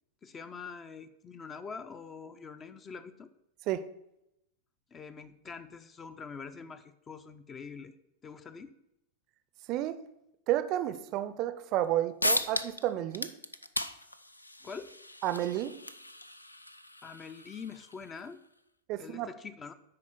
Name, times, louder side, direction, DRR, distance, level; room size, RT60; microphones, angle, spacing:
voice 1, 0.2-3.3 4.9-8.0 8.2-8.7 14.6-14.9 17.0-18.4 19.0-19.7, left 5 dB, 20° left, 11 dB, 0.5 m, -44 dB
voice 2, 9.7-10.0 10.5-13.3 15.2-15.8 18.9-19.3, right 12 dB, 40° right, 14 dB, 0.5 m, -31 dB
sound 1, 11.8-11.9 12.2-12.9 13.1-18.3, left 1 dB, 85° left, 0.4 m, -36 dB
9.8 x 4.2 x 6.0 m, 0.85 s
figure-of-eight pair, 90°, 0 cm